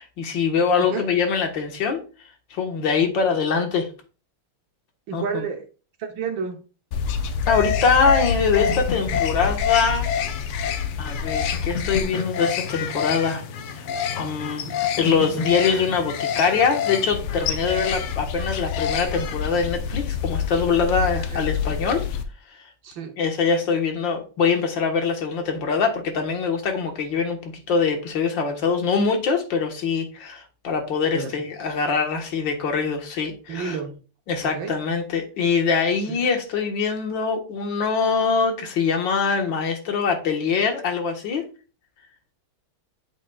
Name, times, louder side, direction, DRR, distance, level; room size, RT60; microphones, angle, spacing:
voice 1, 0.0-2.0 2.5-3.9 5.1-5.4 7.5-10.1 11.0-13.4 14.1-14.7 15.0-22.1 23.2-33.8 34.3-41.5, left 5 dB, 60° left, 2.1 m, -23 dB
voice 2, 0.8-1.1 5.1-5.7 6.0-6.6 21.1-21.4 22.8-23.2 31.1-31.4 33.5-34.0 34.4-34.8 36.1-36.2, right 6 dB, 65° right, 1.7 m, -31 dB
sound 1, 6.9-22.2, left 7 dB, 80° left, 1.7 m, -27 dB
8.2 x 7.4 x 2.4 m
omnidirectional pair, 2.4 m